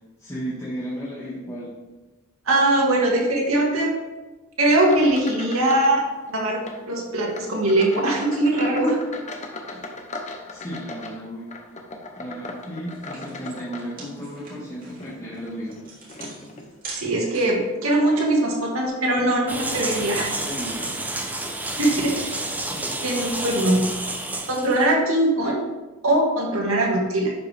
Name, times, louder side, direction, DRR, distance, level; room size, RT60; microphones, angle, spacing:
voice 1, 0.2-1.7 9.7-9.8 10.5-11.5 12.1-15.8 20.4-20.9 22.7-22.9, equal, 15° left, -8 dB, 1.5 m, -34 dB
voice 2, 2.5-3.9 4.6-6.0 6.3-9.0 16.9-20.3 21.8-22.4 23.0-23.9 24.5-25.6 26.0-27.3, right 1 dB, 80° right, -1 dB, 2.0 m, -21 dB
sound 1, 4.8-6.0 6.2-6.8 7.3-14.4 14.9-16.7 17.3-17.6 18.1-18.2 19.1-19.2 19.5-19.7, left 3 dB, 35° left, 0.9 m, -38 dB
sound 2, 12.5-12.6 12.9-17.7, right 3 dB, 45° right, 2.4 m, -42 dB
sound 3, 19.5-24.9, right 2 dB, 10° right, 0.6 m, -30 dB
11.0 x 5.2 x 3.5 m, 1.2 s
head